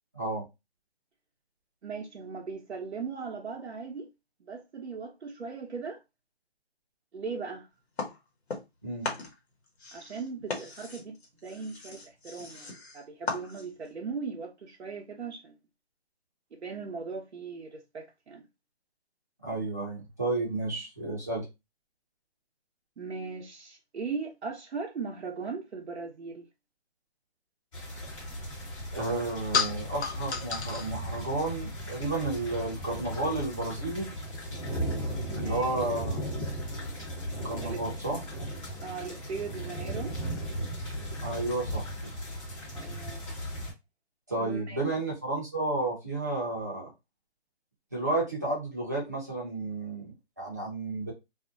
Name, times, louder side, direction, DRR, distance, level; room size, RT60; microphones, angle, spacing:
voice 1, 0.1-0.4 8.8-9.1 19.4-21.5 28.9-34.1 35.3-36.3 37.3-38.2 41.2-41.9 44.3-46.9 47.9-51.1, right 2 dB, 15° right, 0.4 m, -32 dB
voice 2, 1.8-4.1 4.4-6.0 7.1-7.7 9.9-15.6 16.5-18.4 23.0-26.5 35.3-35.8 37.6-37.8 38.8-40.1 42.7-43.2 44.4-44.8, right 5 dB, 90° right, 0.6 m, -38 dB
sound 1, 8.0-8.8 9.0-13.9, left 4 dB, 70° left, 1.0 m, -38 dB
sound 2, 27.7-43.7, equal, 30° left, 1.0 m, -36 dB
sound 3, 28.0-33.5, left 5 dB, 90° left, 0.6 m, -36 dB
2.4 x 2.1 x 2.5 m
hypercardioid pair, 160°, 33 cm